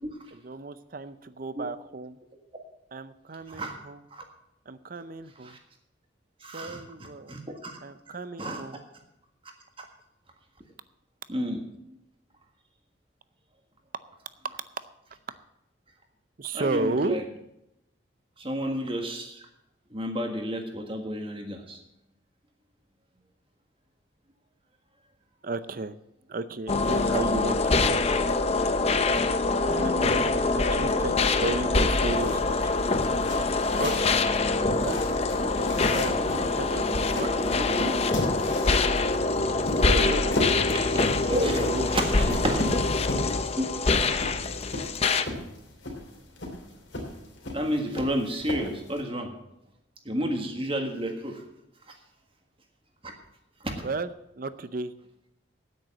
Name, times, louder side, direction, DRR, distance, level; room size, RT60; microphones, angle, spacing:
voice 1, 0.3-2.2 2.9-4.0 4.7-5.6 6.5-7.3 7.8-8.9 16.4-17.2 25.4-25.9 26.3-28.0 29.2-29.4 29.6-32.6 33.7-34.2 34.8-35.0 35.6-37.9 39.8-40.3 41.6-41.9 42.3-42.7 53.8-54.9, right 2 dB, 45° right, 14 dB, 0.6 m, -34 dB
voice 2, 6.4-6.8 7.3-7.8 8.1-8.6 11.3-11.6 16.5-17.2 18.4-19.5 19.9-21.8 29.7-30.6 37.4-37.9 40.7-41.6 41.9-42.6 43.6-43.7 45.1-45.2 47.5-49.3 50.0-51.4 53.6-53.7, equal, 30° right, 4 dB, 1.6 m, -31 dB
sound 1, 26.7-45.2, left 3 dB, 30° left, 0.6 m, -25 dB
sound 2, 32.0-49.0, left 1 dB, 70° left, 2.9 m, -37 dB
9.5 x 8.9 x 7.5 m, 0.86 s
head